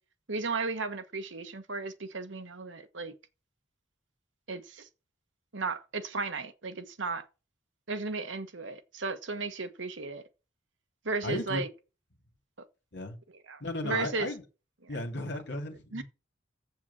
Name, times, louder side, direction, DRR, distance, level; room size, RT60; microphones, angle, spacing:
voice 1, 0.3-3.1 4.5-4.9 5.5-7.2 7.9-10.2 11.0-11.7 13.5-14.3 15.9-16.0, right 4 dB, 70° right, 1.3 m, -35 dB
voice 2, 11.2-11.6 12.9-13.1 13.6-14.4 14.9-16.0, left 1 dB, 60° left, 2.5 m, -35 dB
7.7 x 7.0 x 7.2 m
head